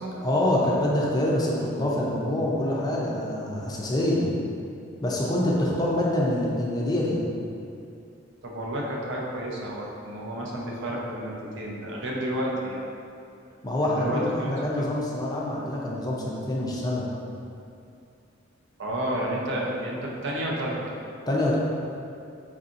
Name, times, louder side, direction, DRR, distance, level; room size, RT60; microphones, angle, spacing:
voice 1, 0.2-4.3 5.0-7.2 13.6-17.1 21.3-21.6, left 1 dB, 20° left, -5 dB, 0.5 m, -25 dB
voice 2, 8.4-12.8 13.8-14.9 18.8-20.8, right 1 dB, 65° right, -3 dB, 0.6 m, -31 dB
4.7 x 2.7 x 2.5 m, 2.5 s
head